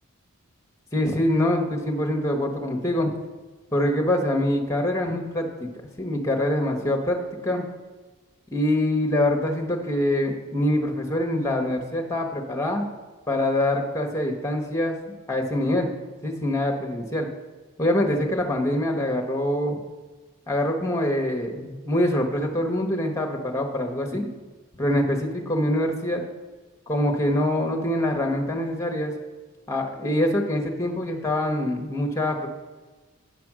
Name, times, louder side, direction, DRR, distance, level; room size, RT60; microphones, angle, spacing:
voice 1, 0.9-3.1 3.7-5.7 6.0-7.2 7.4-7.6 8.5-12.9 13.3-14.9 15.3-15.9 16.2-17.3 17.8-19.8 20.5-24.3 24.8-26.2 26.9-29.1 29.7-32.5, left 1 dB, 15° left, 2 dB, 1.0 m, -24 dB
8.7 x 5.1 x 6.1 m, 1.3 s
head